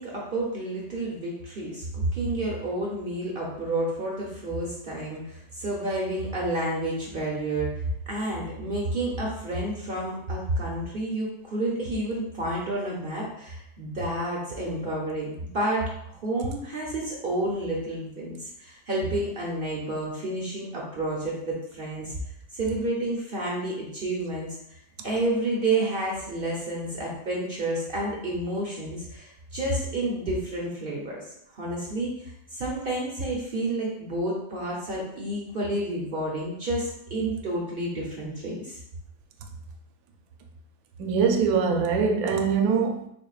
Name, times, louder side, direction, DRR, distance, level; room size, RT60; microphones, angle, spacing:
voice 1, 0.0-22.2 22.5-24.5 25.0-31.2 31.5-32.2 32.5-38.8, right 1 dB, 55° right, -3 dB, 0.6 m, -30 dB
voice 2, 41.0-43.0, right 5 dB, 75° right, 3 dB, 1.0 m, -23 dB
3.7 x 3.5 x 2.4 m, 0.75 s
omnidirectional pair, 1.6 m